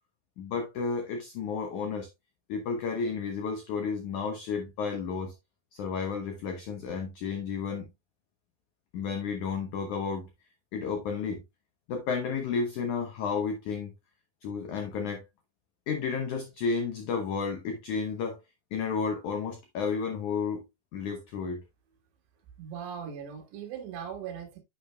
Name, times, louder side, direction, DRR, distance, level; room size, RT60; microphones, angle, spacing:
voice 1, 0.4-2.1 2.5-5.3 5.7-7.9 8.9-10.3 10.7-11.4 11.9-13.9 14.4-15.2 15.9-18.4 18.7-20.6 20.9-21.6, left 5 dB, 80° left, 1.7 m, -32 dB
voice 2, 22.6-24.6, right 8 dB, 80° right, 3.7 m, -39 dB
9.7 x 6.5 x 2.2 m
omnidirectional pair, 5.0 m